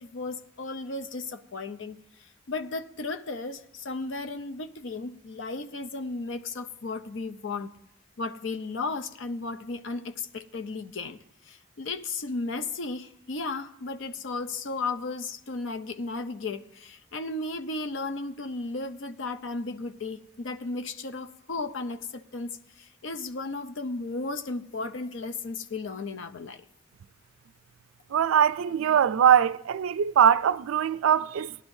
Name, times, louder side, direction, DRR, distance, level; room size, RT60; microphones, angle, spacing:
voice 1, 0.0-7.7 8.2-11.2 11.4-26.6, left 3 dB, 65° left, 0.6 m, -35 dB
voice 2, 28.1-31.6, right 8 dB, 80° right, 0.3 m, -22 dB
18.5 x 11.0 x 2.7 m
head